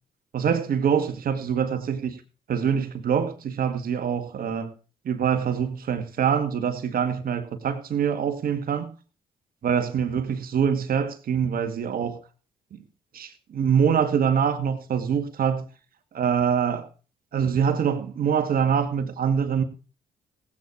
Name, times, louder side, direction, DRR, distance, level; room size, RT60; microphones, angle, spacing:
voice 1, 0.3-2.2 2.5-4.7 5.1-8.9 9.6-12.2 12.7-12.8 13.1-15.7 16.1-16.8 17.3-19.6, right 7 dB, 60° right, 2.1 m, -24 dB
17.0 x 8.8 x 4.8 m
supercardioid pair, 60°, 17 cm